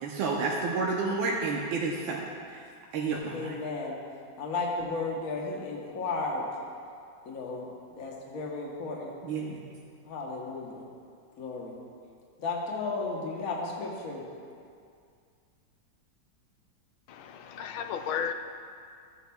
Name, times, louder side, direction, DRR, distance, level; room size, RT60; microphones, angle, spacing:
voice 1, 0.0-2.2 2.5-2.6 2.9-3.5 9.2-9.7, right 4 dB, 80° right, -3 dB, 1.6 m, -30 dB
voice 2, 3.3-4.0 4.4-6.5 7.2-9.2 10.0-10.9 11.4-11.8 12.4-14.2, left 3 dB, 50° left, -2 dB, 1.4 m, -34 dB
voice 3, 17.1-18.3, left 8 dB, 90° left, 7 dB, 1.5 m, -34 dB
15.0 x 8.3 x 2.3 m, 2.3 s
omnidirectional pair, 2.2 m